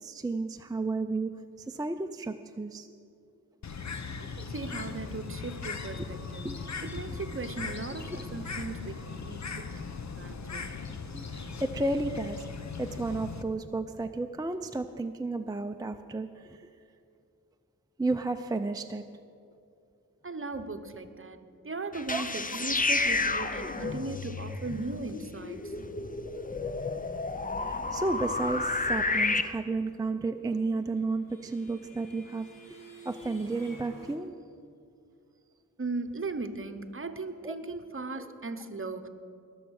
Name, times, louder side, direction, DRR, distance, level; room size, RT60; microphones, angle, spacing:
voice 1, 0.0-2.9 6.0-6.1 6.4-6.6 7.1-7.2 11.1-12.5 12.8-16.7 18.0-19.0 22.1-22.2 26.3-26.5 27.6-32.8 33.0-34.4 37.4-37.6 38.2-38.3, right 3 dB, 10° right, 7 dB, 0.4 m, -33 dB
Bird, 3.6-13.4, left 5 dB, 55° left, 0.9 m, -39 dB
voice 2, 4.2-6.5 6.8-9.7 10.2-10.7 20.2-26.0 26.5-26.6 35.8-39.1, right 3 dB, 40° right, 9 dB, 0.9 m, -38 dB
sound 1, 21.9-29.4, left 3 dB, 25° left, 0.7 m, -31 dB
sound 2, 30.3-34.2, left 1 dB, 70° left, 1.8 m, -50 dB
20.5 x 7.1 x 6.4 m, 2.5 s
wide cardioid pair, 65°, 34 cm